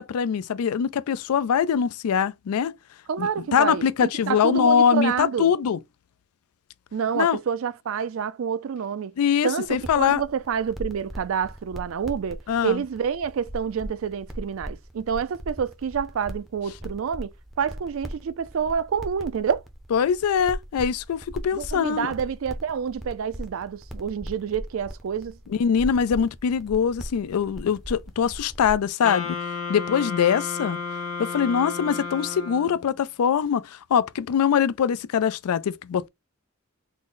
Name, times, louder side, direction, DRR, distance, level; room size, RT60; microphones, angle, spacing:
voice 1, 0.0-2.7 3.2-5.8 7.1-7.4 9.2-10.2 12.5-12.8 19.9-22.1 25.5-29.4 29.7-30.8 31.2-36.1, left 7 dB, 90° left, 0.4 m, -23 dB
voice 2, 3.1-5.5 6.9-9.1 9.4-19.6 21.5-25.4, right 7 dB, 65° right, 0.3 m, -28 dB
sound 1, 9.6-28.9, equal, ahead, 0.5 m, -40 dB
Wind instrument woodwind instrument, 29.0-32.9, left 4 dB, 75° left, 0.9 m, -32 dB
3.7 x 2.1 x 3.8 m
head